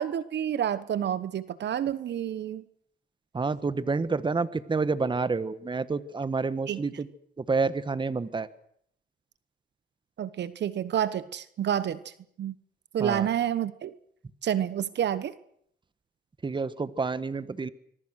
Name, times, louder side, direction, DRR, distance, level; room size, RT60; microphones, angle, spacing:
voice 1, 0.0-2.6 6.7-6.8 10.2-12.1 12.4-12.5 12.9-13.9 14.4-15.3, right 10 dB, 60° right, 15 dB, 1.1 m, -29 dB
voice 2, 3.3-7.1 7.4-8.5 13.0-13.3 16.4-17.7, right 4 dB, 25° right, 14 dB, 1.3 m, -28 dB
25.5 x 22.5 x 6.4 m, 0.68 s
cardioid pair, 90°, 20 cm